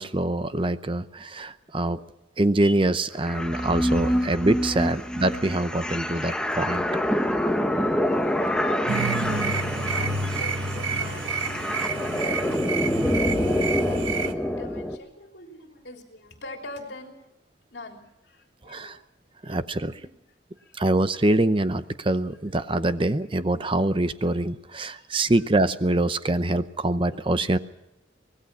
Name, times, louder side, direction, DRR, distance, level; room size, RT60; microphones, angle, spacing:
voice 1, 0.0-2.0 2.4-6.9 18.7-19.0 19.4-20.0 20.8-27.6, right 1 dB, 25° right, 12 dB, 0.7 m, -24 dB
sound 1, 3.2-15.0, equal, 5° left, 1.2 m, -26 dB
voice 2, 8.1-8.9 9.3-12.8 13.1-17.1 17.7-19.0 19.4-20.1 20.6-20.8 22.0-22.2 24.9-25.3, left 2 dB, 60° left, 3 dB, 3.4 m, -44 dB
sound 2, 8.9-14.3, right 4 dB, 80° right, 1.2 m, -29 dB
24.5 x 19.5 x 6.1 m, 0.91 s
head